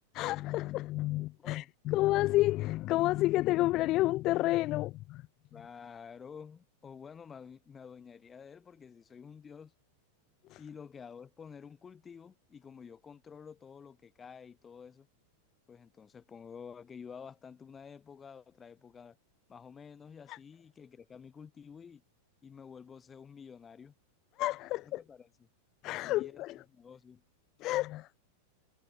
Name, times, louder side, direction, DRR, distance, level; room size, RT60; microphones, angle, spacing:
voice 1, 0.1-5.2 10.5-10.6 20.3-20.4 24.4-25.0 25.8-26.6 27.6-28.2, left 17 dB, 35° left, 0.6 m, -30 dB
voice 2, 5.5-9.7 10.6-15.1 15.7-19.2 19.5-22.0 22.4-23.9 24.8-25.5 26.1-27.2, left 6 dB, 20° left, 7.3 m, -50 dB
figure-of-eight pair, 90°, 0 cm